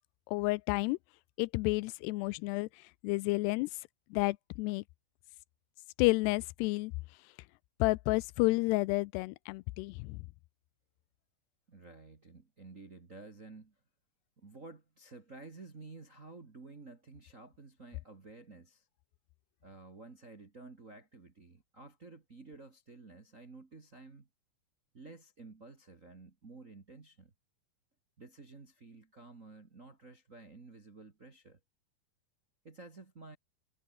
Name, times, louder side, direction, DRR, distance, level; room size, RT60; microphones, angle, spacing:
voice 1, 0.3-1.0 1.4-2.7 3.0-3.7 4.1-4.8 6.0-6.9 7.8-10.2, left 23 dB, 90° left, 2.7 m, -30 dB
voice 2, 11.7-13.7 14.4-18.9 19.6-24.3 24.9-27.3 28.2-31.6 32.6-33.4, right 3 dB, 35° right, 1.3 m, -52 dB
omnidirectional pair, 4.7 m